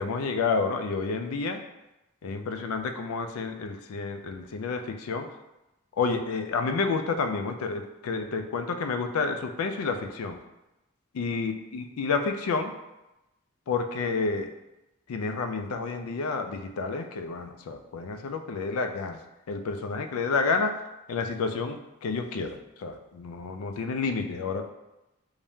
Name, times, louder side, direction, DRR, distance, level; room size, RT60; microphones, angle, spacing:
voice 1, 0.0-1.6 2.2-5.3 6.0-10.4 11.1-12.7 13.7-14.5 15.1-19.2 19.5-20.8 21.1-24.7, left 4 dB, 85° left, 8 dB, 0.4 m, -30 dB
3.4 x 2.7 x 3.4 m, 0.95 s
head